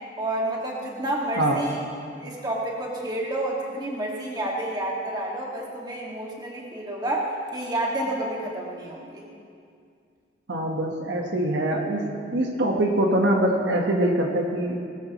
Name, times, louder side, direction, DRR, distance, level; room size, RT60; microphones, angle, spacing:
voice 1, 0.2-1.8 2.2-9.2, right 1 dB, 20° right, -3 dB, 1.9 m, -29 dB
voice 2, 10.5-14.8, right 1 dB, 70° right, 0 dB, 1.3 m, -24 dB
19.0 x 13.5 x 3.1 m, 2.3 s
head